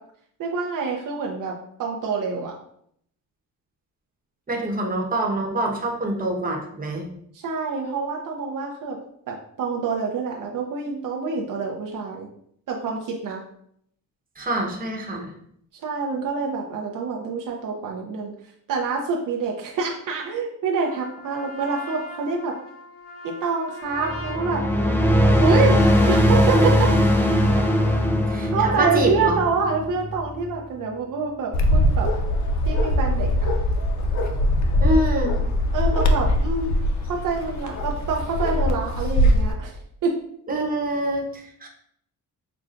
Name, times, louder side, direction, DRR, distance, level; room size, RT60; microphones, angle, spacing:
voice 1, 0.4-2.5 7.3-9.0 9.3-12.3 12.7-13.4 15.8-18.3 18.7-22.5 23.2-24.6 25.4-25.8 26.1-26.9 28.5-32.1 32.7-33.3 35.7-36.7 37.1-39.7 40.0-40.2, right 4 dB, 65° right, 0 dB, 0.7 m, -26 dB
voice 2, 4.5-7.1 14.4-15.3 28.3-29.4 34.8-35.3 40.5-41.7, right 1 dB, 25° right, 0 dB, 1.0 m, -25 dB
Trumpet, 20.8-28.0, left 2 dB, 70° left, 1.3 m, -40 dB
sound 1, 24.0-30.6, equal, 5° left, 0.5 m, -20 dB
Bark, 31.5-39.5, left 1 dB, 55° left, 0.6 m, -21 dB
5.7 x 2.2 x 2.5 m, 0.69 s
cardioid pair, 85°, 35 cm